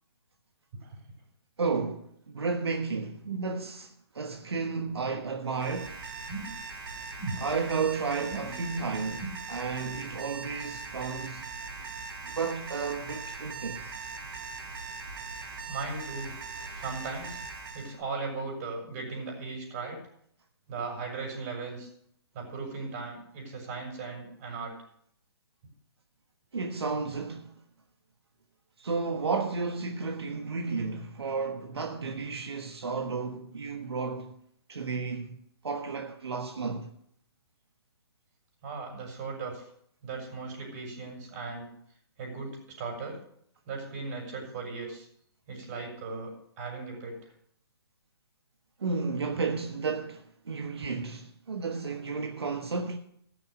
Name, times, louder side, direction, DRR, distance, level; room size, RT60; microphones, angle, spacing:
voice 1, 1.6-6.0 7.4-9.2 9.5-11.5 12.2-13.9 26.5-27.6 28.8-34.4 34.7-36.9 48.8-53.0, right 4 dB, 80° right, 1.4 m, -32 dB
Alarm, 5.5-18.0, right 4 dB, 55° right, 3.6 m, -41 dB
voice 2, 15.7-16.4 16.7-17.4 17.7-20.0 20.7-21.9 22.3-24.7 38.6-39.7 40.0-41.7 42.2-43.2 43.7-45.1 45.5-47.3, right 4 dB, 40° right, 6.0 m, -37 dB
14.5 x 6.9 x 6.6 m
hypercardioid pair, 135°, 13 cm